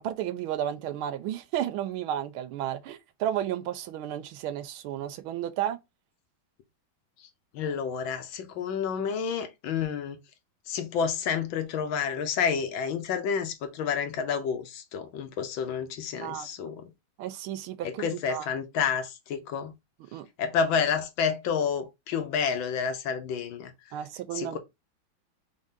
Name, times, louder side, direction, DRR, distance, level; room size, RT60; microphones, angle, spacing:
voice 1, 0.0-5.8 16.2-16.7 17.2-18.5 20.1-20.3 23.9-24.6, right 11 dB, 90° right, 1.5 m, -33 dB
voice 2, 7.5-10.2 10.7-16.8 17.8-19.7 20.4-23.7 24.3-24.6, left 6 dB, 75° left, 1.5 m, -29 dB
4.8 x 2.7 x 3.6 m
omnidirectional pair, 2.3 m